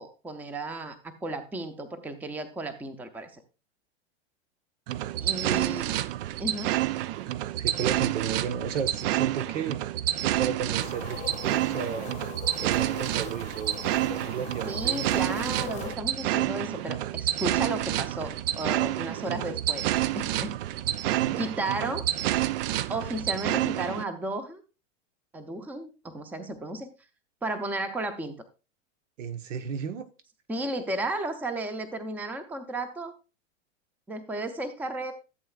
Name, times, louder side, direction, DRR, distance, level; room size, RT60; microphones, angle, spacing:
voice 1, 0.0-3.4 5.2-5.9 6.4-6.7 14.7-19.9 20.1-20.6 21.4-22.1 22.9-24.6 25.3-26.9 27.4-28.3 30.5-33.1 34.1-35.1, right 2 dB, 5° right, 0.6 m, -33 dB
sound 1, 4.9-24.0, right 14 dB, 50° right, 0.5 m, -29 dB
voice 2, 7.6-10.0 10.2-12.1 12.6-13.8 14.2-15.2 20.9-21.4 29.2-30.1, right 7 dB, 75° right, 1.2 m, -33 dB
sound 2, 10.8-16.0, left 8 dB, 20° left, 0.9 m, -41 dB
14.5 x 7.6 x 2.4 m
hypercardioid pair, 130°, 37 cm